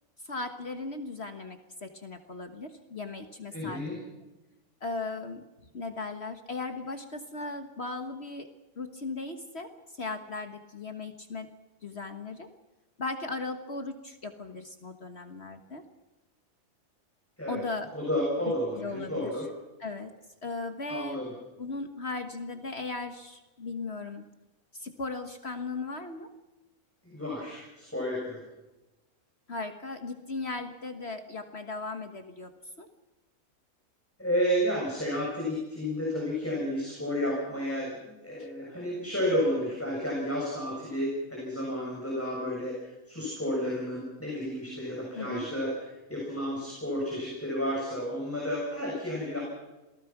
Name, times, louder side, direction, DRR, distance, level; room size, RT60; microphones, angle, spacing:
voice 1, 0.3-3.8 4.8-5.4 5.7-8.5 8.8-11.5 11.8-12.5 13.0-15.8 17.5-17.9 18.7-19.3 19.8-20.1 20.4-21.2 21.6-24.3 24.7-26.3 29.5-32.5 32.8-32.9 38.4-38.5 45.2-45.5, left 3 dB, 45° left, 7 dB, 1.6 m, -37 dB
voice 2, 3.5-4.0 17.4-17.6 17.9-19.4 20.9-21.3 27.0-28.4 34.2-45.7 46.1-49.4, equal, 10° left, -4 dB, 7.2 m, -31 dB
27.5 x 19.5 x 6.0 m, 1.1 s
omnidirectional pair, 1.6 m